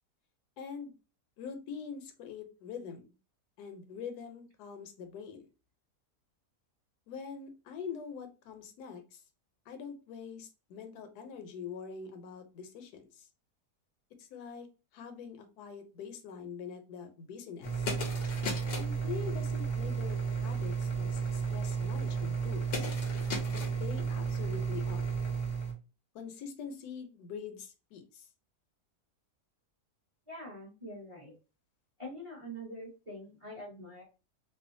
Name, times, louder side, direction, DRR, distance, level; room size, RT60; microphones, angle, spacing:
voice 1, 0.6-0.9 1.4-3.1 3.6-5.5 7.1-9.2 9.7-13.3 14.2-14.7 14.9-17.9 18.7-22.9 23.5-25.1 26.1-28.3, left 6 dB, 80° left, 6 dB, 1.1 m, -44 dB
sound 1, 17.6-25.7, right 5 dB, 60° left, 0.6 m, -33 dB
voice 2, 30.3-31.3 32.0-34.0, equal, 25° right, -3 dB, 0.7 m, -44 dB
2.7 x 2.2 x 2.5 m, 0.31 s
omnidirectional pair, 1.7 m